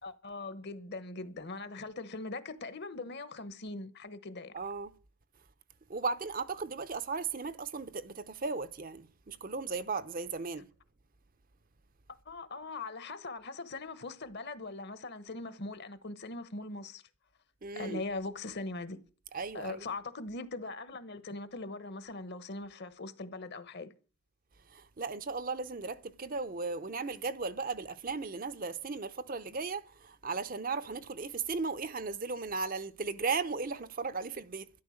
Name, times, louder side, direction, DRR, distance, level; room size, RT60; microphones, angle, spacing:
voice 1, 0.0-4.5 12.3-17.0 17.8-19.0 19.5-23.9, left 3 dB, 50° left, 1.1 m, -41 dB
voice 2, 4.5-4.9 5.9-10.7 17.6-18.0 19.3-19.9 24.7-34.7, right 4 dB, 40° right, 0.6 m, -36 dB
12.5 x 11.0 x 6.4 m
head